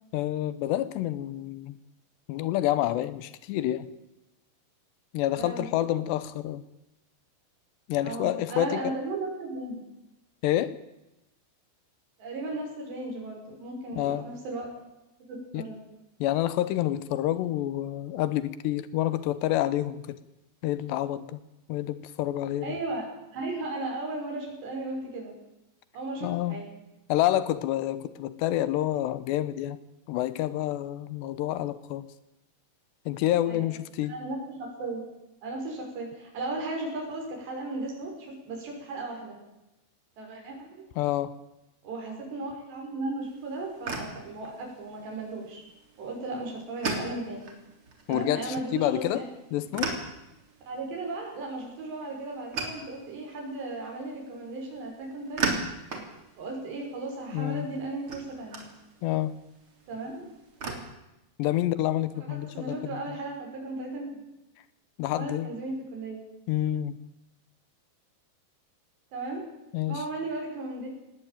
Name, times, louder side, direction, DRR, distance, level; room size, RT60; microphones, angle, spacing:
voice 1, 0.1-1.8 2.3-3.9 5.1-6.6 7.9-8.9 10.4-10.7 14.0-14.3 15.5-15.6 16.2-20.2 20.6-21.4 21.7-22.8 26.2-26.6 27.1-29.8 30.1-32.1 33.1-34.1 41.0-41.3 48.1-49.2 49.5-49.9 57.3-57.7 59.0-59.3 61.4-62.8 65.0-65.5 66.5-67.0 69.7-70.0, left 13 dB, 80° left, 15 dB, 3.1 m, -28 dB
voice 2, 5.4-5.7 8.0-9.8 12.2-14.7 15.3-15.8 22.6-23.1 23.3-25.3 25.9-26.7 33.5-33.7 34.1-35.1 35.4-39.4 40.2-40.9 41.8-45.6 46.0-47.4 48.1-49.3 50.7-55.4 56.4-58.6 59.9-60.3 62.1-64.2 65.1-66.2 69.1-69.4 69.9-70.9, right 2 dB, 75° right, 0 dB, 7.8 m, -35 dB
sound 1, 43.2-60.7, right 3 dB, 35° right, 3.5 m, -39 dB
19.0 x 17.5 x 9.1 m, 0.93 s
omnidirectional pair, 4.9 m